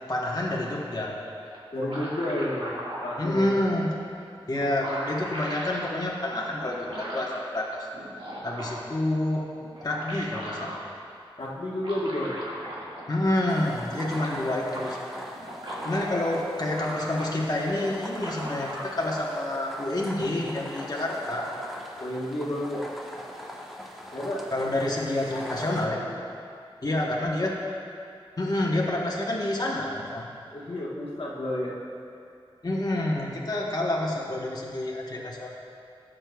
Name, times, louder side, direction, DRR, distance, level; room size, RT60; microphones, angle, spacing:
voice 1, 0.1-1.2 3.2-4.0 4.5-8.0 8.4-9.5 9.8-10.7 13.1-15.0 15.8-21.5 24.5-26.0 26.8-27.5 28.4-30.3 32.6-35.5, left 1 dB, 40° left, -3 dB, 1.1 m, -28 dB
sound 1, 1.5-3.2 4.2-4.3 4.5-5.9 6.6-7.4 7.9-9.0 9.6-10.8 11.7-13.1 13.4-13.5 13.7-14.9 15.3-17.5 17.8-18.8, equal, 70° right, 1.9 m, -38 dB
voice 2, 1.7-3.6 11.4-12.3 22.0-22.9 24.1-24.4 25.3-26.0 30.5-31.8, left 1 dB, 70° left, -4 dB, 1.2 m, -31 dB
sound 2, 13.5-25.9, equal, ahead, 1.1 m, -41 dB
13.5 x 7.6 x 2.3 m, 2.5 s
cardioid pair, 50°, 10 cm